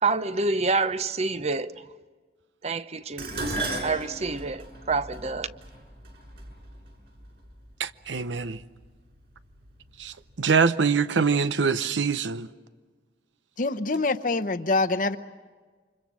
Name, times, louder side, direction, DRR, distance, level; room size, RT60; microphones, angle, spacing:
voice 1, 0.0-1.9 2.6-3.6 3.8-5.6, right 3 dB, 35° right, 0.7 m, -27 dB
Dishes pots and pans, 3.2-7.5 8.4-8.8 9.2-10.0 10.3-10.4, right 2 dB, 60° right, 6.8 m, -35 dB
voice 2, 7.8-8.6 10.0-12.5, right 5 dB, 90° right, 0.8 m, -24 dB
voice 3, 13.6-15.2, left 3 dB, 45° left, 0.9 m, -25 dB
29.0 x 25.5 x 6.3 m
head